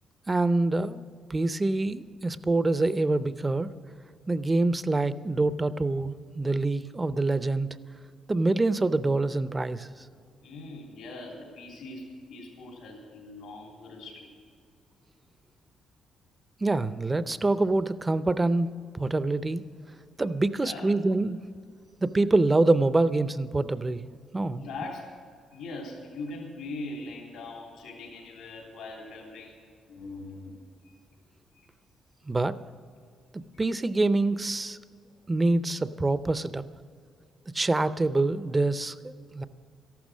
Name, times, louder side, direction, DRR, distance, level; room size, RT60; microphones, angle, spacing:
voice 1, 0.3-1.0 1.3-3.7 4.3-7.7 8.3-9.9 16.6-19.7 20.2-21.4 22.0-24.0 24.3-24.6 32.3-32.6 33.3-34.8 35.3-36.6 37.5-39.4, right 2 dB, 20° right, 14 dB, 0.6 m, -25 dB
voice 2, 10.4-14.3 20.2-20.3 20.5-21.0 24.6-25.1 25.5-29.6 29.9-30.9 31.5-31.7, left 2 dB, 85° left, -1 dB, 3.2 m, -41 dB
13.5 x 12.0 x 6.2 m, 2.2 s
cardioid pair, 90°, 0 cm